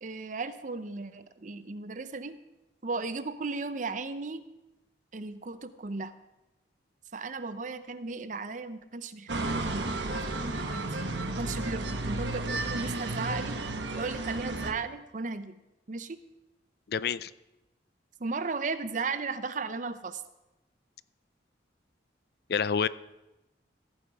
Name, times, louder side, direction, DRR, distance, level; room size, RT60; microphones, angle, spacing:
voice 1, 0.0-2.4 2.8-4.4 5.1-6.1 7.1-13.6 13.9-15.6 15.9-16.2 18.2-20.2, right 3 dB, 45° right, 12 dB, 0.6 m, -36 dB
sound 1, 9.3-14.7, right 2 dB, 80° right, 1.2 m, -33 dB
voice 2, 16.9-17.3 22.5-22.9, left 6 dB, 60° left, 17 dB, 0.4 m, -27 dB
15.0 x 9.2 x 4.8 m, 0.98 s
head